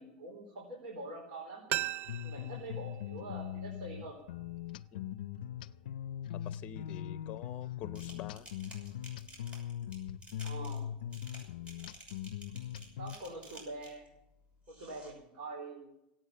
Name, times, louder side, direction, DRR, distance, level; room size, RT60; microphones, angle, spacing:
voice 1, 0.0-1.6 2.2-4.2 10.4-10.9 13.0-14.1 14.7-15.9, right 2 dB, 70° right, -2 dB, 4.3 m, -45 dB
srhoenhut mfp C, 1.7-4.5 4.8-4.9, right 14 dB, 45° right, 0.5 m, -40 dB
sound 1, 2.1-13.2, left 10 dB, 90° left, 0.4 m, -41 dB
voice 2, 6.4-8.5, left 10 dB, 35° left, 13 dB, 0.7 m, -46 dB
sound 2, 7.9-14.1 14.6-15.1, right 1 dB, 25° right, 6.1 m, -53 dB
17.5 x 8.8 x 7.5 m, 0.84 s
supercardioid pair, 125°, 5 cm